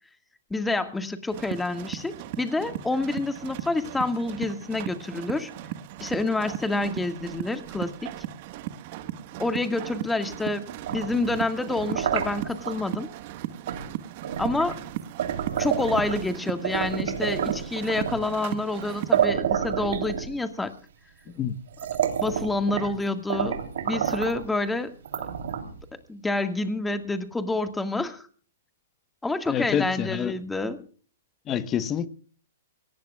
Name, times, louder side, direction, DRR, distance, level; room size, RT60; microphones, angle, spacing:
voice 1, 0.5-5.5 6.0-8.1 9.4-10.6 10.9-13.1 14.4-14.8 15.6-20.7 22.2-24.9 26.1-28.3 29.2-30.8, left 2 dB, 5° left, 1.8 m, -28 dB
sound 1, 1.3-19.3, right 12 dB, 45° right, 1.5 m, -37 dB
sound 2, 10.7-12.8 13.7-13.9 14.2-16.3 16.6-18.3 18.8-18.9 19.1-20.6 21.3-21.4 21.7-23.0 23.3-24.4 25.0-25.8, right 9 dB, 70° right, 3.3 m, -29 dB
voice 2, 29.5-30.3 31.5-32.1, left 8 dB, 25° left, 1.1 m, -27 dB
23.5 x 18.5 x 2.4 m
hypercardioid pair, 140°, 0 cm